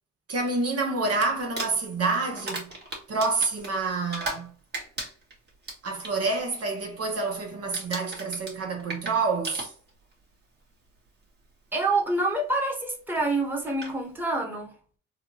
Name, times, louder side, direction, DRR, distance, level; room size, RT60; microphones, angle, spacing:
voice 1, 0.3-2.7 3.1-4.5 5.8-9.7, right 3 dB, 50° right, 1.0 m, -28 dB
Crumpling crinkling, 1.4-4.5 4.7-6.1 6.5-6.8 7.1-7.4 7.7-10.1 11.1-11.2 13.2-13.3 13.7-14.0, right 2 dB, 35° right, 1.4 m, -36 dB
voice 2, 11.7-14.7, right 2 dB, 5° right, 1.1 m, -27 dB
3.6 x 2.3 x 2.9 m
cardioid pair, 90°, 30 cm